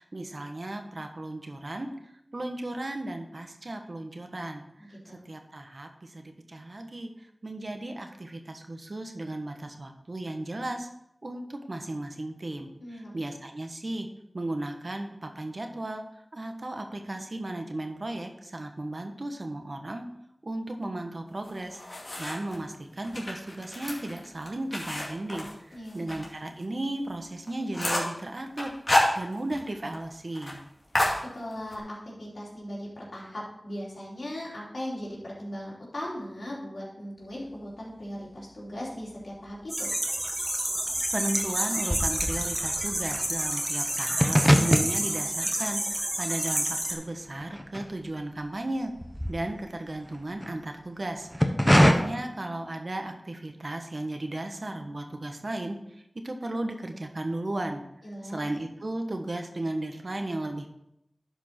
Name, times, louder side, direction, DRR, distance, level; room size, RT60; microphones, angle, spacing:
voice 1, 0.0-1.9 2.3-4.6 5.1-7.1 7.4-10.9 11.2-14.1 14.3-16.0 16.3-20.0 20.4-21.8 22.2-25.5 25.9-28.7 29.1-30.6 41.1-48.9 49.3-55.8 56.2-57.8 58.2-60.7, right 1 dB, 60° right, 5 dB, 1.2 m, -35 dB
voice 2, 4.8-5.2 12.8-13.1 25.7-26.2 31.3-39.9 58.0-58.5, equal, 85° left, -5 dB, 3.2 m, -38 dB
sound 1, 21.4-22.6 23.0-26.3 26.6-26.7 27.1-27.2 27.5-28.2 28.6-29.7 29.9-30.0 30.3-30.6 30.9-31.8, left 1 dB, 55° left, 2.4 m, -29 dB
sound 2, 39.1-39.9 40.1-48.4 48.8-50.5 51.1-51.9, equal, 5° left, 1.1 m, -26 dB
sound 3, 39.7-46.9, right 1 dB, 30° right, 1.5 m, -29 dB
11.0 x 5.2 x 4.4 m, 0.80 s
wide cardioid pair, 45°, 0 cm